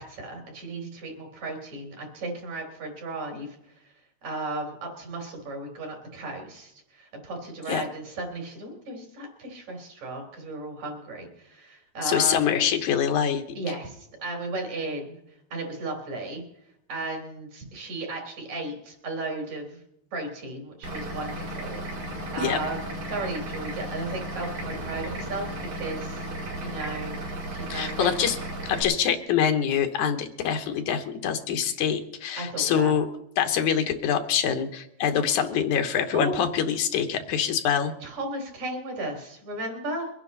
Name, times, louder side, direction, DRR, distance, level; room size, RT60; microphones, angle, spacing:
voice 1, 0.0-3.6 4.2-12.5 13.5-15.2 15.5-16.4 16.9-19.8 20.1-26.3 26.6-27.2 27.5-28.1 32.4-32.9 36.1-36.4 38.0-40.1, right 2 dB, 70° right, 2 dB, 4.7 m, -35 dB
voice 2, 12.0-13.4 22.4-22.6 27.7-28.4 28.6-33.1 33.4-37.9, left 8 dB, 90° left, 6 dB, 2.6 m, -25 dB
Vehicle / Engine, 20.8-28.8, right 1 dB, 85° right, 5.0 m, -35 dB
23.5 x 10.0 x 4.1 m, 0.78 s
omnidirectional pair, 3.4 m